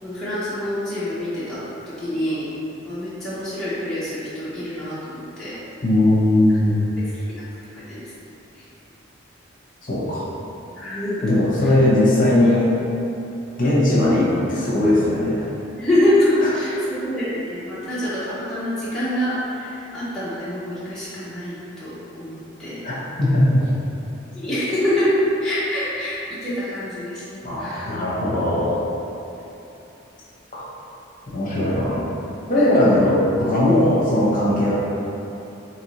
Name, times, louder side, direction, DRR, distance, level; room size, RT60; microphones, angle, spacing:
voice 1, 0.0-2.5 2.9-5.6 6.7-7.4 7.7-8.1 8.5-8.7 10.8-11.3 11.6-11.7 15.8-22.8 24.3-25.1 25.4-27.2 27.6-28.0 32.5-32.8, left 1 dB, 5° left, -13 dB, 0.7 m, -26 dB
voice 2, 5.8-6.8 9.8-10.2 11.2-12.7 13.6-15.5 22.8-22.9 23.2-23.6 27.4-28.8 31.3-32.1 32.5-34.7, left 1 dB, 40° left, -8 dB, 0.9 m, -18 dB
4.2 x 3.0 x 3.0 m, 3.0 s
head